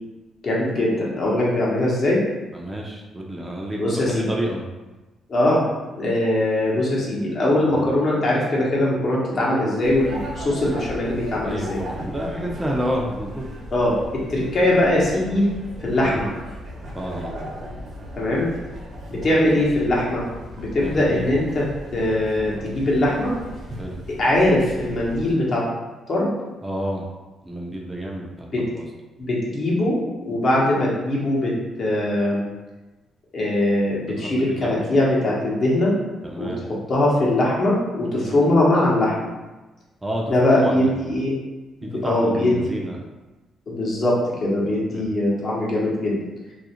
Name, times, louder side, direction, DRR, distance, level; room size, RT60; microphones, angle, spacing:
voice 1, 0.4-2.2 3.8-4.3 5.3-5.6 6.0-11.8 13.7-15.5 15.8-16.3 18.2-18.5 19.1-20.2 20.6-23.3 24.1-25.7 26.1-26.3 28.5-28.6 29.2-30.0 30.2-32.4 33.3-35.9 36.4-39.3 40.3-41.3 41.8-42.5 43.7-46.2, left 1 dB, 50° left, -5 dB, 0.8 m, -21 dB
voice 2, 2.5-4.6 7.6-7.9 11.4-13.4 16.0-16.3 16.9-17.4 20.8-21.3 23.8-24.0 26.6-27.1 27.4-28.5 28.7-28.8 34.1-34.9 36.2-36.6 38.2-38.5 40.0-41.1 41.8-43.0 44.9-45.0, equal, 15° right, -1 dB, 0.4 m, -30 dB
sound 1, 9.8-25.3, equal, 65° right, 0.7 m, -36 dB
2.4 x 2.0 x 2.8 m, 1.1 s
cardioid pair, 90°, 0 cm